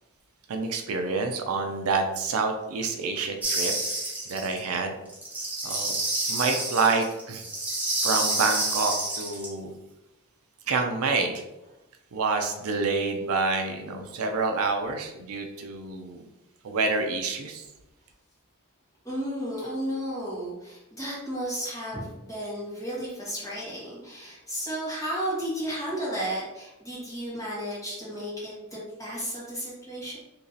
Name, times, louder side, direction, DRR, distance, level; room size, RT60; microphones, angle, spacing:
voice 1, 0.5-3.7 4.3-4.9 5.6-5.9 6.3-7.4 8.0-9.7 10.7-11.4 12.1-16.2 16.6-17.7, right 4 dB, 70° right, 4 dB, 0.4 m, -27 dB
sound 1, 3.4-4.6 5.1-9.5, right 2 dB, 5° right, 0.7 m, -29 dB
voice 2, 19.0-30.2, equal, 15° left, -7 dB, 1.5 m, -33 dB
2.9 x 2.7 x 3.9 m, 0.94 s
head